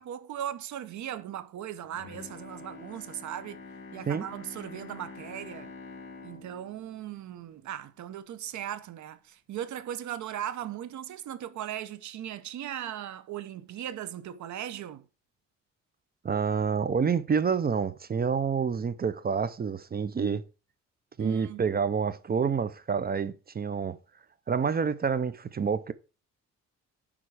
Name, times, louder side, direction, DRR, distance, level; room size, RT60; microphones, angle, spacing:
voice 1, 0.0-3.6 3.9-5.7 6.2-15.0 21.2-21.6, right 11 dB, 70° right, 0.9 m, -38 dB
Bowed string instrument, 1.8-8.1 8.5-8.6, left 4 dB, 40° left, 2.9 m, -46 dB
voice 2, 16.2-20.4 21.2-24.0 24.5-25.9, right 6 dB, 30° right, 0.6 m, -28 dB
11.0 x 3.7 x 4.8 m
cardioid pair, 90°, 30 cm